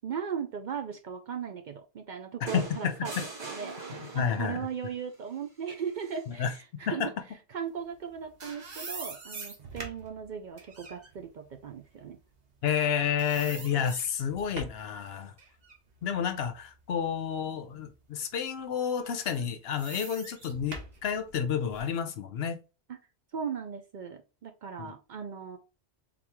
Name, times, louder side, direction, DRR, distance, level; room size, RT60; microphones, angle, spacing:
voice 1, 0.0-3.8 4.1-7.1 7.5-12.2 22.9-23.0 23.3-25.6, right 7 dB, 60° right, 0.5 m, -37 dB
voice 2, 2.4-3.2 4.1-4.7 6.3-6.5 6.9-7.1 12.6-15.3 16.0-22.6 24.8-24.9, left 8 dB, 70° left, 0.8 m, -30 dB
sound 1, 2.5-4.6 6.0-6.2, right 3 dB, 80° right, 2.3 m, -41 dB
sound 2, 8.0-12.9 13.2-14.9 15.4-17.3 17.8-17.9 19.0-22.0, right 3 dB, 40° right, 1.0 m, -44 dB
3.8 x 3.0 x 3.5 m
omnidirectional pair, 1.1 m